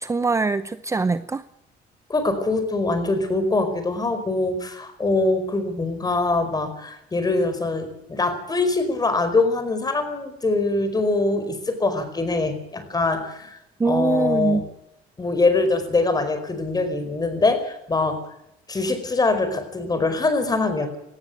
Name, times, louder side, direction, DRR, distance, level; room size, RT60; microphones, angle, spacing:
voice 1, 0.0-1.4 13.8-14.7, right 4 dB, 15° right, 14 dB, 0.7 m, -23 dB
voice 2, 2.1-13.6 13.8-14.6 15.2-18.2 18.7-21.0, left 3 dB, 25° left, 10 dB, 4.9 m, -23 dB
18.5 x 15.0 x 9.5 m, 0.82 s
cardioid pair, 110°, 17 cm